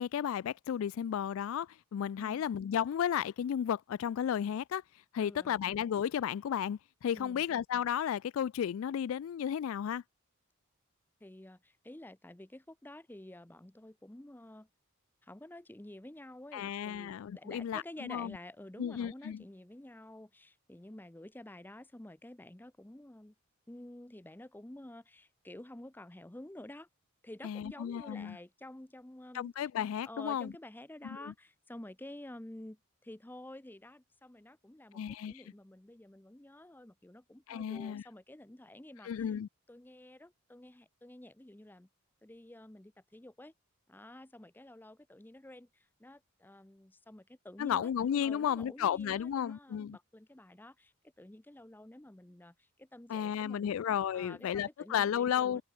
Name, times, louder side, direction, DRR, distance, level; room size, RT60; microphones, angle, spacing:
voice 1, 0.0-4.8 5.1-10.0 16.5-18.4 18.8-19.4 27.4-28.4 29.3-30.5 31.0-31.3 34.9-35.4 37.5-38.0 39.0-39.5 47.6-50.0 53.1-55.6, left 9 dB, 70° left, 0.3 m, -33 dB
voice 2, 5.2-5.6 7.1-7.4 11.2-14.7 15.2-23.3 23.7-26.9 27.2-29.5 30.1-39.3 39.7-41.9 42.2-43.5 43.9-47.9 48.2-53.8 54.1-55.6, left 1 dB, 10° left, 0.6 m, -50 dB
open air
head